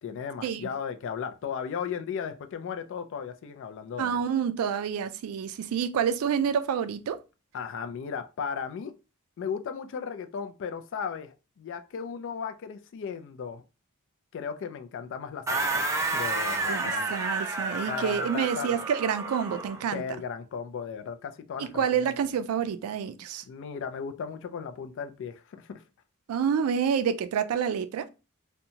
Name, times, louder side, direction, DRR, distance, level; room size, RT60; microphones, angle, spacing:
voice 1, 0.0-4.2 7.5-8.9 9.4-13.6 14.3-17.1 17.9-18.7 19.9-22.1 23.5-25.8, left 6 dB, 60° left, 0.3 m, -36 dB
voice 2, 4.0-7.2 16.7-20.0 21.6-23.4 26.3-28.1, right 7 dB, 85° right, 0.3 m, -28 dB
sound 1, 15.5-19.9, right 2 dB, 15° right, 0.4 m, -30 dB
2.7 x 2.2 x 2.7 m
head